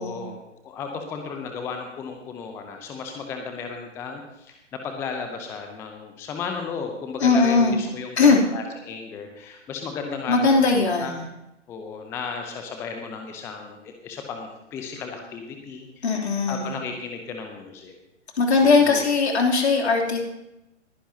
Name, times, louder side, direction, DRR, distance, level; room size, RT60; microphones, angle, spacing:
voice 1, 0.0-11.1 11.7-16.0 16.5-17.9 18.5-19.0, left 5 dB, 5° left, 4 dB, 0.6 m, -34 dB
voice 2, 7.2-7.8 8.2-8.4 10.3-11.3 16.0-16.8 18.4-20.2, left 4 dB, 60° left, 1 dB, 3.2 m, -19 dB
21.0 x 10.0 x 2.8 m, 0.90 s
figure-of-eight pair, 130°, 36 cm